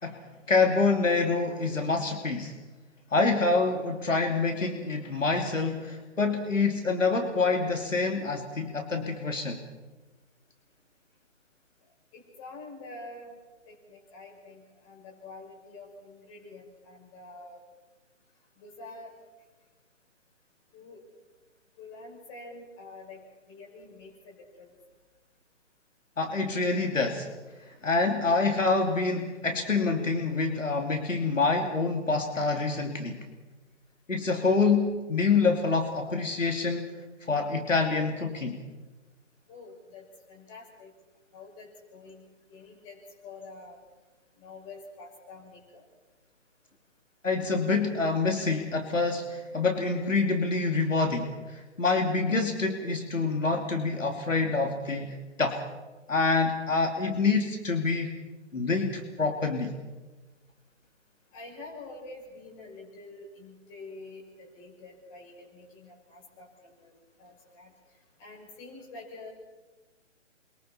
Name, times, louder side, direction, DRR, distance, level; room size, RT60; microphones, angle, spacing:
voice 1, 0.5-2.5 3.1-9.6 26.2-27.3 27.8-33.2 34.1-36.9 37.3-38.6 47.2-55.6 56.1-58.2 58.5-59.7, left 4 dB, 80° left, 3 dB, 2.9 m, -26 dB
voice 2, 12.1-13.3 13.7-17.6 18.6-19.1 20.7-21.0 21.8-23.2 23.5-24.7 39.5-40.9 41.3-43.8 44.4-45.8 61.3-67.7 68.2-69.3, left 3 dB, 25° left, -2 dB, 6.5 m, -47 dB
28.5 x 23.5 x 4.4 m, 1.2 s
figure-of-eight pair, 145°, 38 cm